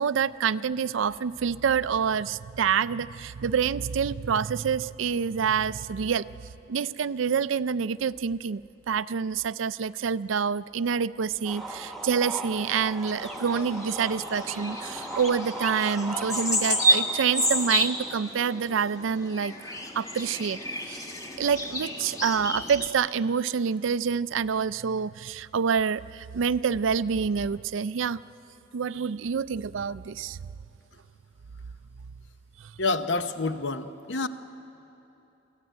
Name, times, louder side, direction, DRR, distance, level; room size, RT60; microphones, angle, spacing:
voice 1, 0.0-6.3 6.7-19.5 20.0-20.6 20.9-21.0 21.4-28.2 28.7-30.4, right 6 dB, 80° right, 17 dB, 0.4 m, -27 dB
sound 1, 11.4-18.2, right 1 dB, ahead, 1.3 m, -37 dB
sound 2, 13.2-22.9, equal, 20° left, 1.6 m, -30 dB
voice 2, 32.8-34.3, left 3 dB, 65° left, 10 dB, 0.9 m, -28 dB
23.5 x 15.5 x 9.1 m, 2.9 s
head